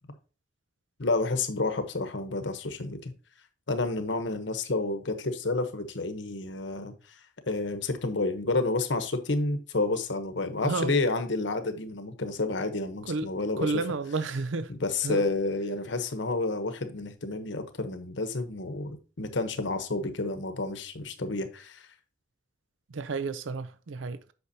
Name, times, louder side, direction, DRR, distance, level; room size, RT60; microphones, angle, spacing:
voice 1, 1.0-3.1 3.7-7.2 7.5-13.7 14.7-21.9, left 3 dB, 65° left, 1.0 m, -30 dB
voice 2, 10.6-10.9 13.1-13.3 13.6-14.7 15.0-15.2 22.9-24.3, right 3 dB, 75° right, 0.5 m, -31 dB
8.1 x 6.0 x 2.8 m
head